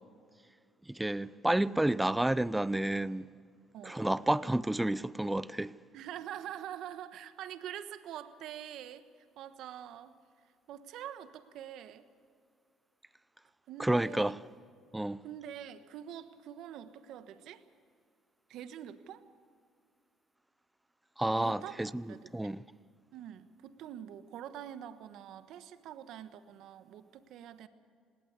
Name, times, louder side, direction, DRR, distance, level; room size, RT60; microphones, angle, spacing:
voice 1, 0.9-3.3 3.8-5.7 13.8-14.4 14.9-15.2 21.2-22.0 22.3-22.6, right 1 dB, 10° right, 0.6 m, -30 dB
voice 2, 3.7-4.0 5.9-9.0 9.4-10.1 10.7-12.0 13.7-14.3 15.2-17.6 18.5-19.2 21.3-21.8 22.1-22.5 23.1-27.7, right 10 dB, 70° right, 1.2 m, -45 dB
19.0 x 17.5 x 8.3 m
supercardioid pair, 90°, 0 cm